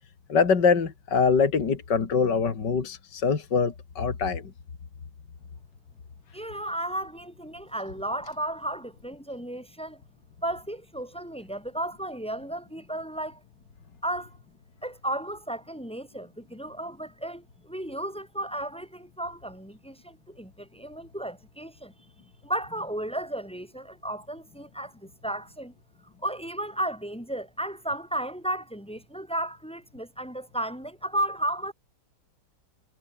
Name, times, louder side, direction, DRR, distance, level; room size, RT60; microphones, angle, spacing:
voice 1, 0.3-4.4, left 5 dB, 60° left, 3.0 m, -24 dB
voice 2, 6.3-10.0 10.4-13.4 14.0-14.4 14.8-21.9 22.4-25.7 26.2-31.7, right 1 dB, 5° left, 5.1 m, -34 dB
omnidirectional pair, 2.1 m